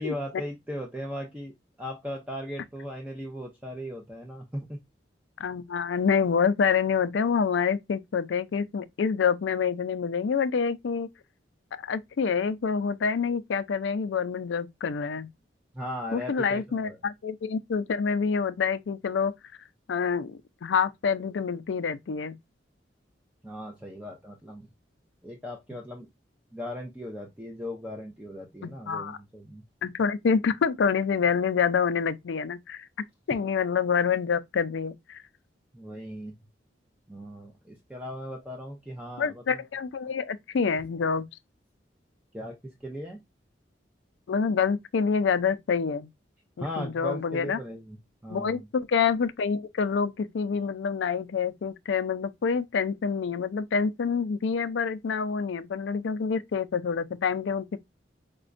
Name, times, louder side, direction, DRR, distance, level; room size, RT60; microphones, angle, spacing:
voice 1, 0.0-1.5 1.8-4.8 15.7-17.0 23.4-24.7 25.2-26.1 26.5-29.6 35.7-36.3 37.1-39.4 42.3-43.2 46.6-48.0 48.2-48.7, equal, 10° right, 0.5 m, -37 dB
voice 2, 5.4-11.1 11.8-15.3 16.1-19.3 19.9-22.4 28.6-29.2 29.8-32.9 33.3-35.2 39.2-41.3 44.3-46.1 46.6-47.6 48.3-57.6, left 6 dB, 80° left, 0.4 m, -27 dB
5.0 x 2.2 x 2.5 m
head